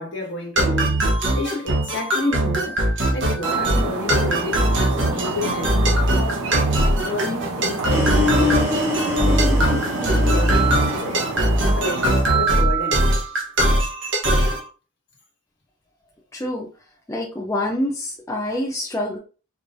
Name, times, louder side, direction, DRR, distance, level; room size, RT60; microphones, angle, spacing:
voice 1, 0.0-2.8 3.1-5.8 6.1-6.5 7.0-8.7 9.2-11.2 11.8-13.1, left 2 dB, 55° left, 1.5 m, -30 dB
sound 1, 0.6-14.6, right 1 dB, 60° right, 1.1 m, -20 dB
sound 2, 3.4-12.3, right 2 dB, 90° right, 0.7 m, -29 dB
sound 3, 7.9-12.0, left 3 dB, 10° right, 0.9 m, -25 dB
voice 2, 16.3-16.7 17.1-19.2, left 1 dB, 15° left, 0.5 m, -26 dB
4.6 x 3.1 x 2.6 m
head